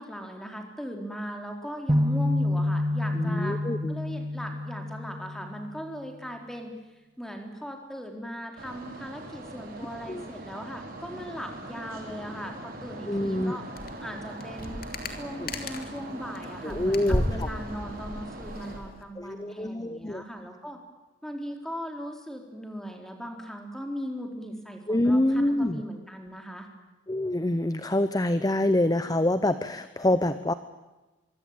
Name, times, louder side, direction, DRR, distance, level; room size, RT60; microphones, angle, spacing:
voice 1, 0.0-3.6 3.9-6.7 7.2-13.6 14.0-14.8 15.1-20.8 21.2-26.7, equal, ahead, 3 dB, 4.1 m, -38 dB
sound 1, 1.9-5.9, left 1 dB, 25° right, 1.4 m, -28 dB
voice 2, 3.2-4.0 10.1-10.3 13.1-13.6 15.4-15.5 16.6-17.5 19.2-20.2 24.9-25.8 27.1-30.5, left 1 dB, 20° left, 12 dB, 0.8 m, -26 dB
sound 2, 8.6-18.8, right 1 dB, 50° right, 5.2 m, -41 dB
sound 3, 13.8-14.1 14.3-16.0 16.4-19.0, left 1 dB, 50° left, 3.0 m, -33 dB
24.5 x 24.5 x 9.1 m, 1.1 s
head